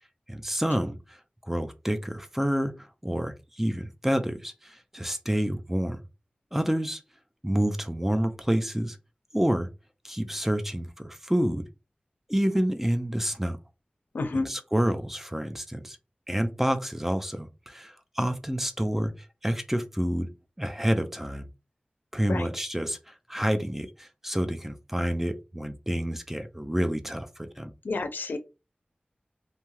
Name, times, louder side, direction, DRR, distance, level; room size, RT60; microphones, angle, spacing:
voice 1, 0.3-1.2 1.4-6.0 6.5-7.0 7.4-9.0 9.3-9.7 10.0-11.7 12.3-13.6 14.3-16.0 16.3-20.3 20.6-21.5 22.1-27.7, equal, 10° right, 0.5 m, -28 dB
voice 2, 14.1-14.5 22.3-22.5 27.8-28.4, left 3 dB, 90° left, 0.4 m, -29 dB
2.7 x 2.2 x 3.1 m
wide cardioid pair, 45°, 3 cm